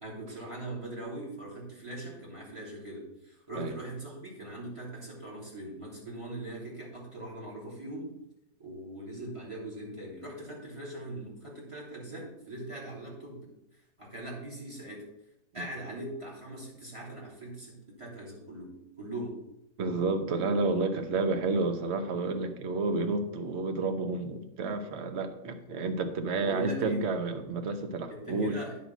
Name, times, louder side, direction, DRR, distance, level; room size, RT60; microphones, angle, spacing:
voice 1, 0.0-8.1 8.6-13.5 14.0-15.1 15.5-19.4 26.3-27.0 28.1-28.8, right 1 dB, 15° right, -4 dB, 3.2 m, -41 dB
voice 2, 19.8-28.6, right 3 dB, 45° right, 7 dB, 1.0 m, -30 dB
9.7 x 5.2 x 6.0 m, 0.84 s
omnidirectional pair, 1.8 m